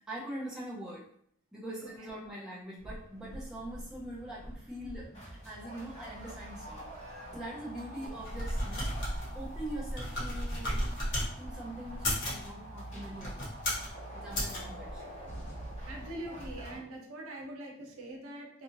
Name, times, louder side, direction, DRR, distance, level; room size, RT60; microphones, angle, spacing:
voice 1, 0.1-1.1 1.5-6.9 7.3-10.8 11.4-13.5 14.1-15.0, right 1 dB, 5° right, -7 dB, 0.6 m, -43 dB
sound 1, 2.8-16.8, right 1 dB, 35° left, 1.4 m, -45 dB
sound 2, 8.1-11.3 11.9-12.4 13.1-13.9 14.3-14.6, equal, 55° left, 1.0 m, -34 dB
voice 2, 15.8-18.6, right 1 dB, 90° right, 1 dB, 0.6 m, -43 dB
2.8 x 2.4 x 2.6 m, 0.63 s
head